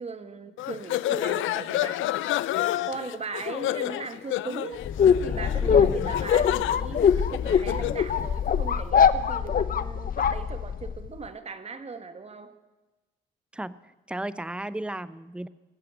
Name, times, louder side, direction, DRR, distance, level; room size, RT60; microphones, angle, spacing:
voice 1, 0.0-2.0 2.9-4.8 5.2-12.6, right 4 dB, 30° right, 9 dB, 1.5 m, -38 dB
sound 1, 0.6-8.0, left 14 dB, 80° left, 0.5 m, -30 dB
sound 2, 4.8-11.1, left 7 dB, 45° left, 0.8 m, -23 dB
voice 2, 5.6-6.1 13.5-15.5, right 1 dB, 5° right, 16 dB, 0.6 m, -35 dB
19.5 x 8.4 x 7.7 m, 1.1 s
cardioid pair, 90°, 20 cm